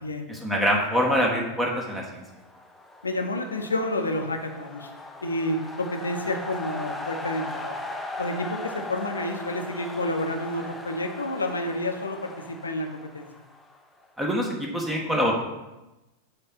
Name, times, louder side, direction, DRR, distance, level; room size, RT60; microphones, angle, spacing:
voice 1, 0.3-2.2 14.2-15.3, equal, 10° right, -1 dB, 1.1 m, -25 dB
sound 1, 2.1-14.0, left 2 dB, 10° left, 0.7 m, -39 dB
voice 2, 3.0-4.9 5.2-7.8 8.2-12.9 13.1-13.3, left 1 dB, 75° left, 5 dB, 0.8 m, -29 dB
6.7 x 3.4 x 5.9 m, 1.0 s
figure-of-eight pair, 90°, 0 cm